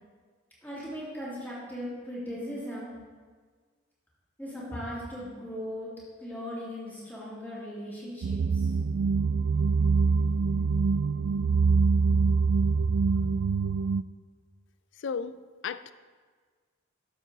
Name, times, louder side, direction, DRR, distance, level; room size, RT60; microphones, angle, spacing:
voice 1, 0.6-2.9 4.4-5.9 6.2-8.7 12.9-13.3, equal, 10° left, -7 dB, 2.7 m, -38 dB
sound 1, 8.2-14.0, right 4 dB, 80° right, 0.3 m, -24 dB
voice 2, 15.0-15.9, left 6 dB, 65° left, 14 dB, 0.4 m, -35 dB
11.5 x 7.3 x 4.0 m, 1.5 s
head